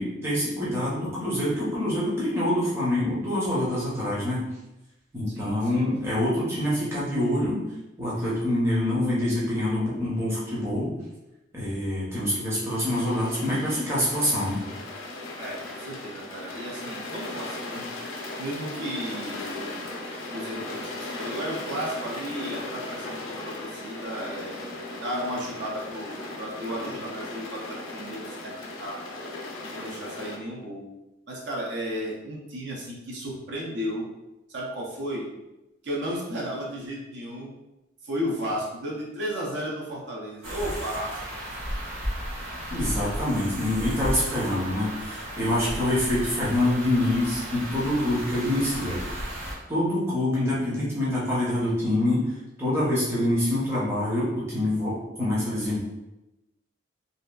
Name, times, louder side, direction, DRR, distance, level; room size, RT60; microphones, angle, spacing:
voice 1, 0.0-4.4 5.1-7.6 8.0-10.9 11.5-14.7 42.7-49.0 49.7-55.8, left 1 dB, 15° right, -8 dB, 0.6 m, -26 dB
voice 2, 5.3-5.8 15.4-17.8 18.4-19.9 20.3-28.5 28.8-29.0 29.6-30.9 31.3-34.0 34.5-35.3 35.8-37.5 38.0-41.2, equal, 60° right, -3 dB, 0.5 m, -34 dB
sound 1, 12.7-30.4, left 2 dB, 80° left, 0.4 m, -37 dB
sound 2, 40.4-49.5, equal, 85° right, 1.0 m, -34 dB
2.7 x 2.3 x 2.2 m, 0.98 s
head